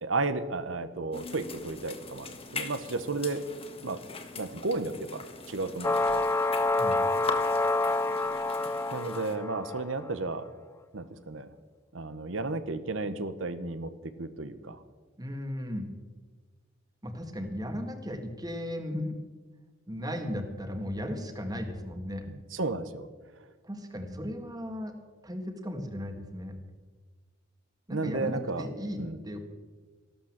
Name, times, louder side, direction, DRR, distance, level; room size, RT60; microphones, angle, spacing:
voice 1, 0.0-3.4 3.8-4.0 4.4-6.3 8.9-10.5 10.9-11.5 11.9-13.9 14.2-14.8 22.3-23.1 27.9-28.7 29.0-29.2, right 3 dB, 75° right, 12 dB, 1.1 m, -33 dB
sound 1, 1.1-9.4, left 4 dB, 30° left, 1.5 m, -41 dB
sound 2, 5.8-9.9, left 2 dB, 15° left, 0.5 m, -27 dB
voice 2, 15.2-15.9 17.0-19.2 19.9-22.3 23.6-24.9 25.2-26.5 27.9-29.4, equal, 20° right, 6 dB, 1.8 m, -36 dB
14.5 x 12.5 x 7.5 m, 1.4 s
head